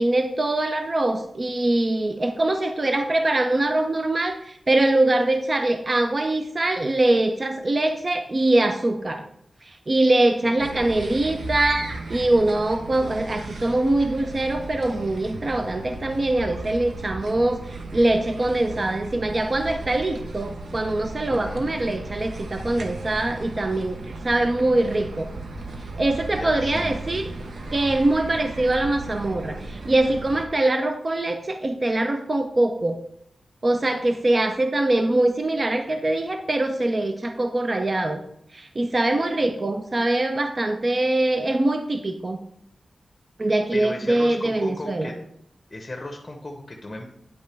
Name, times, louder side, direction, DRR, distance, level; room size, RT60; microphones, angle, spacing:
voice 1, 0.0-9.2 9.6-24.0 24.2-25.3 26.0-27.3 27.7-33.0 33.6-38.2 38.5-42.4 43.4-45.1, right 2 dB, 40° right, 6 dB, 0.5 m, -23 dB
voice 2, 10.4-11.0 21.3-21.7 26.3-26.9 43.7-45.2 45.7-47.0, left 1 dB, 20° left, 3 dB, 0.9 m, -35 dB
sound 1, 10.6-30.4, right 2 dB, 75° right, 0.8 m, -36 dB
9.1 x 5.3 x 3.4 m, 0.76 s
wide cardioid pair, 105°, 0 cm